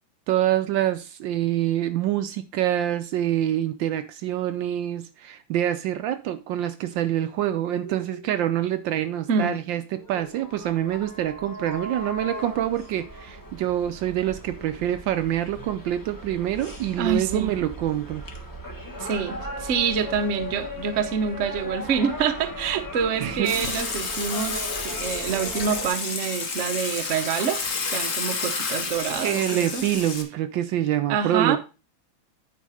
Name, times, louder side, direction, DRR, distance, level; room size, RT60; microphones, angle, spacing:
voice 1, 0.3-18.2 23.2-23.6 29.2-31.6, right 12 dB, 75° right, 1.2 m, -26 dB
sound 1, 7.6-25.9, equal, 10° left, 1.0 m, -38 dB
voice 2, 9.3-9.6 17.0-17.5 19.0-24.6 24.8-29.8 31.1-31.6, right 7 dB, 55° right, 0.8 m, -26 dB
Water / Water tap faucet / Sink (filling or washing), 23.4-30.2, left 4 dB, 45° left, 1.3 m, -30 dB
9.3 x 4.9 x 4.8 m
omnidirectional pair, 2.3 m